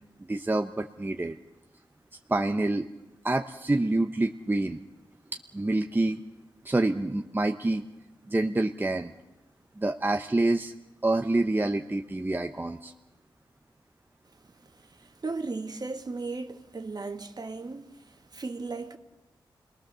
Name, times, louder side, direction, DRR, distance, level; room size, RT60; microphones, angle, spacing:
voice 1, 0.3-1.4 2.3-2.9 3.2-4.8 5.5-6.2 6.6-7.8 8.3-9.1 9.8-10.7 11.0-12.9, right 2 dB, 20° right, 0.9 m, -27 dB
voice 2, 14.5-19.0, right 3 dB, 50° right, 1.7 m, -37 dB
29.0 x 20.0 x 6.9 m
wide cardioid pair, 75°, 9 cm